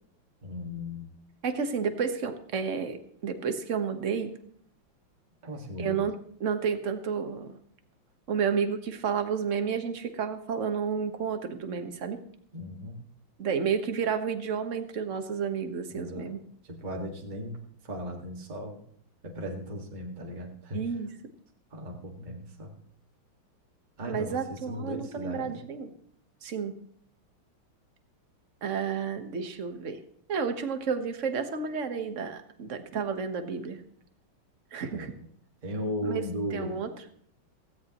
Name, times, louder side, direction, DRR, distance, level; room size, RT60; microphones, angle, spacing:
voice 1, 0.4-1.1 5.4-6.0 12.5-13.0 15.9-16.3 16.6-17.6 17.8-18.8 19.2-20.8 21.7-22.7 24.0-25.6 34.9-35.1 35.6-36.8, equal, 20° right, 0 dB, 2.0 m, -36 dB
voice 2, 1.4-4.3 5.8-6.1 6.4-7.5 8.3-12.2 13.4-16.4 20.7-21.1 24.1-25.9 26.4-26.8 28.6-30.0 30.3-33.8 34.7-35.1 36.0-36.9, right 6 dB, 40° right, 7 dB, 1.5 m, -31 dB
17.0 x 16.5 x 3.1 m, 0.63 s
omnidirectional pair, 2.3 m